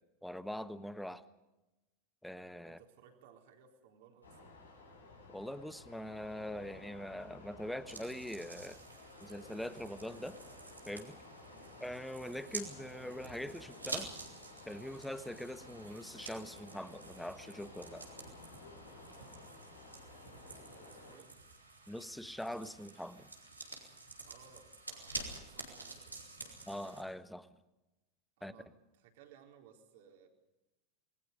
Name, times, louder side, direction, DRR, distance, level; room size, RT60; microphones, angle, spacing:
voice 1, 0.2-1.2 2.2-2.8 5.3-8.8 9.2-10.4 10.9-11.2 11.8-14.1 14.6-18.1 21.9-23.3 26.7-27.5 28.4-28.5, left 1 dB, 5° left, 13 dB, 1.3 m, -43 dB
voice 2, 2.6-4.6 11.5-11.7 19.1-19.4 20.4-21.3 24.2-26.6 28.4-30.3, right 7 dB, 60° right, 3 dB, 4.0 m, -61 dB
sound 1, 4.2-21.2, left 3 dB, 85° left, 4.7 m, -55 dB
sound 2, 7.9-27.0, right 3 dB, 90° right, 3.8 m, -49 dB
27.5 x 20.5 x 5.3 m, 1.0 s
figure-of-eight pair, 85°, 0 cm